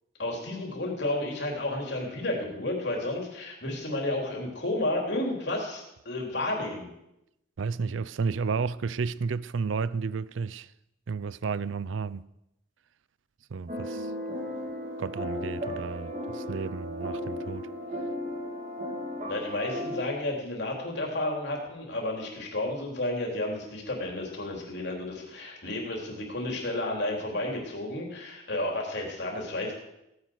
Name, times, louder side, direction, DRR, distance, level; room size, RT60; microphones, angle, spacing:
voice 1, 0.2-6.9 19.3-29.7, left 1 dB, 55° left, 3.9 m, -32 dB
voice 2, 7.6-10.7 11.1-12.2 13.5-14.1 15.0-17.7, right 5 dB, 75° right, 0.5 m, -32 dB
sound 1, 13.7-20.0, equal, 35° right, 2.8 m, -35 dB
17.0 x 9.5 x 6.4 m
head